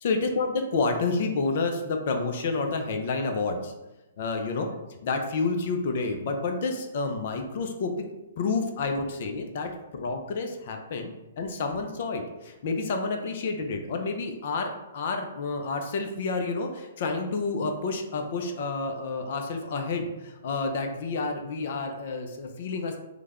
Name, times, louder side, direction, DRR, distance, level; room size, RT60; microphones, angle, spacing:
voice 1, 0.0-3.7 4.2-7.9 8.4-23.0, left 3 dB, 60° left, 4 dB, 0.5 m, -29 dB
3.2 x 2.1 x 3.5 m, 1.0 s
hypercardioid pair, 135°, 0 cm